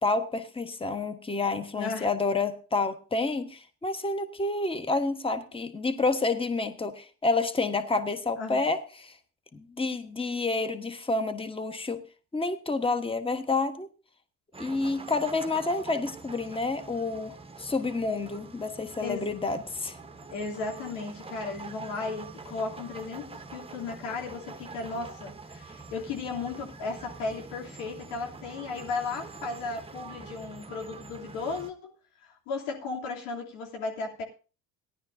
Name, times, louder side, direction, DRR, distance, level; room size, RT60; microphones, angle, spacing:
voice 1, 0.0-9.1 9.5-12.0 12.3-13.9 14.6-20.0, left 3 dB, 10° left, 9 dB, 1.3 m, -29 dB
voice 2, 1.7-2.1 8.4-8.6 19.0-19.3 20.3-31.9 32.2-34.2, left 4 dB, 70° left, -1 dB, 3.2 m, -35 dB
sound 1, 14.5-31.7, right 4 dB, 10° right, 1.0 m, -45 dB
18.0 x 11.0 x 2.7 m, 0.36 s
hypercardioid pair, 65°, 46 cm